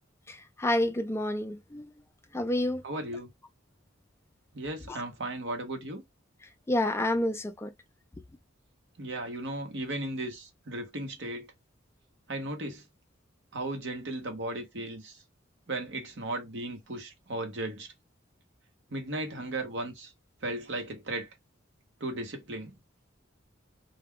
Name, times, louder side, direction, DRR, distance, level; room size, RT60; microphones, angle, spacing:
voice 1, 0.3-1.8 2.3-2.8 4.9-5.0 6.7-7.7, left 1 dB, 15° left, 0.4 m, -29 dB
voice 2, 2.8-3.3 4.5-6.0 9.0-11.5 12.3-12.8 13.5-15.2 15.7-17.9 18.9-20.1 20.4-21.3 22.0-22.7, right 2 dB, 65° right, 0.9 m, -36 dB
2.3 x 2.2 x 3.5 m
head